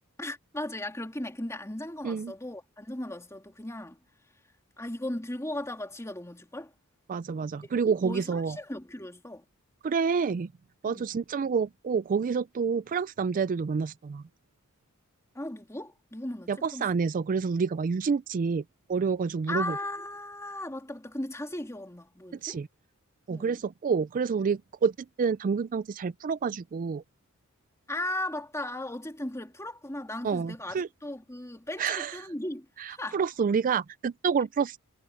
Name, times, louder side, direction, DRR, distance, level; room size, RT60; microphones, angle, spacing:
voice 1, 0.2-4.0 4.8-6.7 7.6-7.7 8.0-9.4 10.9-11.2 15.3-16.9 19.5-22.6 23.3-23.6 27.9-33.2, left 1 dB, 15° left, 2.6 m, -37 dB
voice 2, 7.1-8.6 9.8-10.5 10.8-14.2 16.5-18.6 18.9-19.8 22.4-22.7 23.3-24.9 25.2-27.0 30.2-30.9 31.8-32.2 32.8-34.8, right 5 dB, 40° right, 0.3 m, -28 dB
head